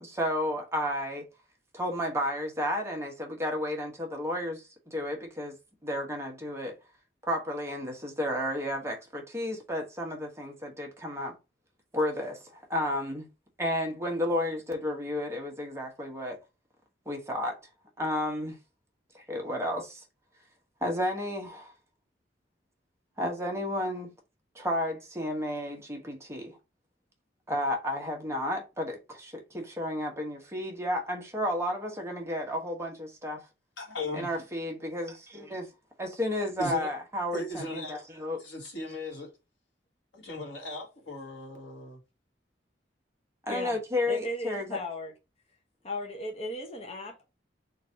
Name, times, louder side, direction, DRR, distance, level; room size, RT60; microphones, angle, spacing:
voice 1, 0.0-1.3 1.7-5.6 5.8-6.8 7.2-11.3 11.9-13.3 13.6-16.4 17.1-17.6 18.0-18.6 19.1-20.0 20.8-21.7 23.2-24.1 24.5-26.6 27.5-33.4 34.1-35.7 36.0-38.4 43.4-44.8, left 1 dB, 15° right, 1.1 m, -32 dB
voice 2, 33.8-34.3 36.6-36.9 37.3-38.1 38.4-39.3 40.1-42.0, left 1 dB, 90° left, 1.9 m, -37 dB
voice 3, 44.1-45.1 45.8-47.3, left 1 dB, 35° left, 0.8 m, -36 dB
3.9 x 2.6 x 4.4 m
head